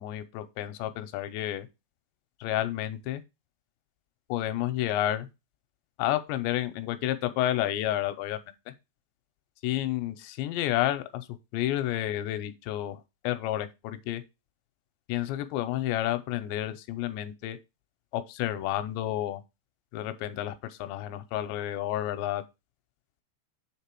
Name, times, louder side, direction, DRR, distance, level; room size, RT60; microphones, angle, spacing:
voice 1, 0.0-1.7 2.4-3.2 4.3-5.3 6.0-8.7 9.6-11.3 11.5-14.2 15.1-17.6 18.1-19.4 19.9-22.4, left 13 dB, 85° left, 2.8 m, -30 dB
7.4 x 3.5 x 4.5 m
omnidirectional pair, 5.1 m